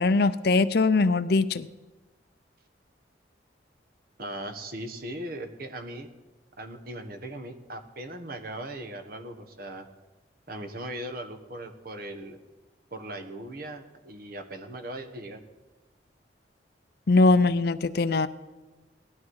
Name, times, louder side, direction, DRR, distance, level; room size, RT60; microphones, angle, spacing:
voice 1, 0.0-1.7 17.1-18.3, left 3 dB, 60° left, 14 dB, 0.6 m, -21 dB
voice 2, 4.2-6.1 6.6-9.9 10.5-12.4 12.9-15.4, right 1 dB, 55° right, 7 dB, 1.3 m, -39 dB
18.0 x 13.0 x 4.8 m, 1.2 s
head